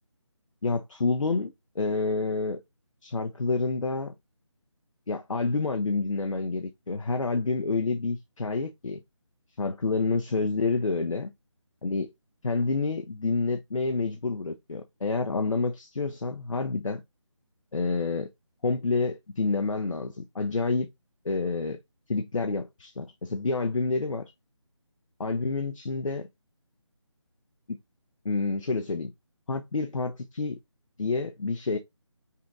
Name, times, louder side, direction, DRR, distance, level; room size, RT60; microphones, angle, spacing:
voice 1, 0.6-2.6 3.0-4.1 5.1-9.0 9.6-11.3 11.8-12.1 12.4-17.0 17.7-18.3 18.6-20.9 21.2-21.8 22.1-24.3 25.2-26.3 27.7-27.8 28.2-29.1 29.5-30.6 31.0-31.8, left 3 dB, 85° left, 0.7 m, -28 dB
5.6 x 2.6 x 3.5 m
figure-of-eight pair, 180°, 16 cm